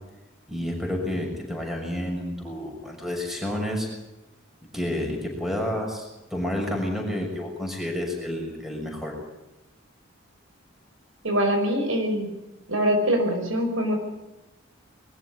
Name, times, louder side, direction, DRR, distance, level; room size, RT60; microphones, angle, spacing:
voice 1, 0.5-3.9 4.7-9.1, left 1 dB, ahead, 0 dB, 6.5 m, -30 dB
voice 2, 11.2-12.3 12.7-14.0, equal, 80° right, 4 dB, 5.6 m, -23 dB
22.5 x 14.0 x 9.7 m, 1.0 s
head